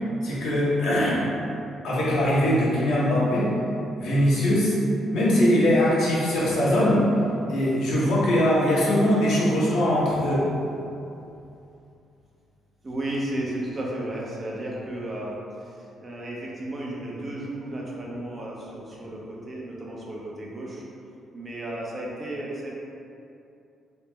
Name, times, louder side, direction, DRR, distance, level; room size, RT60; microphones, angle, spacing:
voice 1, 0.2-1.2 1.8-3.5 4.0-4.7 5.1-7.1 7.5-10.5, left 1 dB, 80° left, -8 dB, 1.1 m, -21 dB
voice 2, 12.8-15.3 15.6-20.8 21.3-22.7, right 1 dB, 35° right, -4 dB, 0.8 m, -33 dB
3.2 x 3.1 x 3.2 m, 2.7 s
cardioid pair, 90°, 0 cm